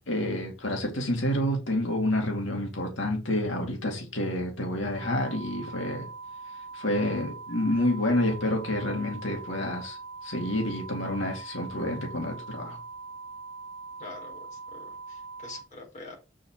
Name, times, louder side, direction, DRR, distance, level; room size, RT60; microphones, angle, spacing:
voice 1, 0.1-6.1 6.7-12.8, left 1 dB, 90° left, 2.5 m, -29 dB
sound 1, 5.0-15.6, right 4 dB, 20° left, 1.1 m, -42 dB
voice 2, 14.0-16.2, left 3 dB, 40° left, 4.3 m, -45 dB
7.3 x 6.2 x 4.7 m
head